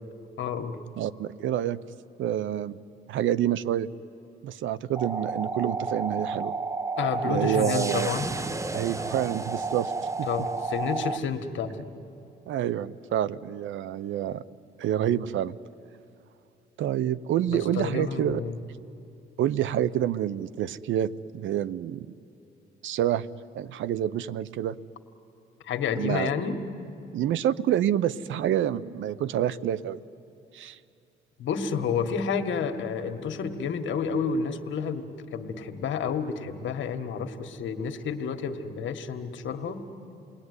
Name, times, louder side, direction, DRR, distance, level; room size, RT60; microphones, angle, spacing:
voice 1, 0.4-0.8 7.0-8.3 10.3-11.9 17.5-18.6 25.6-26.6 31.4-35.0 35.3-39.8, left 6 dB, 75° left, 7 dB, 1.7 m, -30 dB
voice 2, 1.0-1.8 2.2-2.8 3.1-3.9 4.4-6.5 7.2-8.1 8.7-9.9 10.2-10.3 12.5-14.4 14.8-15.6 16.8-18.4 19.4-22.1 22.8-23.3 23.5-24.8 26.0-26.3 27.1-30.0 30.5-30.8, right 11 dB, 75° right, 17 dB, 0.7 m, -27 dB
sound 1, 4.9-11.2, right 3 dB, 15° right, 0.9 m, -31 dB
29.5 x 20.0 x 9.7 m, 2.7 s
cardioid pair, 90°, 20 cm